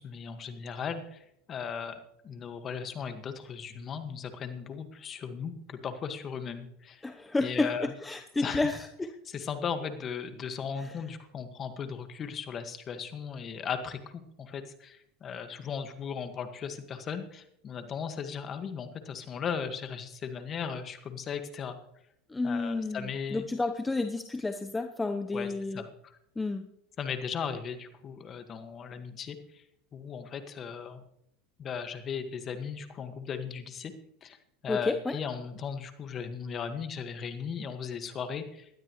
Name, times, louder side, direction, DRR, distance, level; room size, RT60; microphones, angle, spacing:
voice 1, 0.0-7.1 7.4-8.7 9.3-21.8 22.4-23.5 25.3-26.2 27.0-29.6 29.9-31.0 31.6-33.9 34.2-34.4 34.6-38.8, left 6 dB, 35° left, 8 dB, 1.8 m, -37 dB
voice 2, 7.0-7.7 8.0-9.1 22.3-25.8 26.4-26.6 34.7-35.2, left 3 dB, 10° left, 6 dB, 0.9 m, -31 dB
19.0 x 12.5 x 3.2 m, 0.74 s
hypercardioid pair, 100°, 0 cm